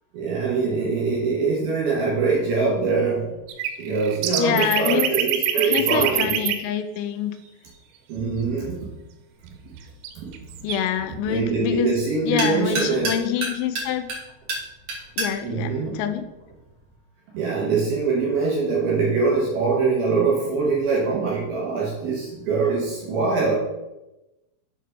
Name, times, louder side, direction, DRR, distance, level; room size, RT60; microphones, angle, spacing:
voice 1, 0.1-3.3 3.8-6.3 8.1-8.8 10.2-10.3 11.3-13.1 15.4-16.0 17.3-23.5, right 4 dB, 65° right, -4 dB, 2.6 m, -23 dB
sound 1, 3.5-6.6 10.0-10.1 10.3-10.8, right 11 dB, 85° right, 3.6 m, -24 dB
voice 2, 4.4-7.4 10.6-11.9 12.2-14.1 15.2-16.3, left 10 dB, 85° left, 9 dB, 3.1 m, -26 dB
sound 2, 9.3-16.9, right 2 dB, 50° right, 2.4 m, -34 dB
8.1 x 4.8 x 5.9 m, 0.99 s
omnidirectional pair, 6.0 m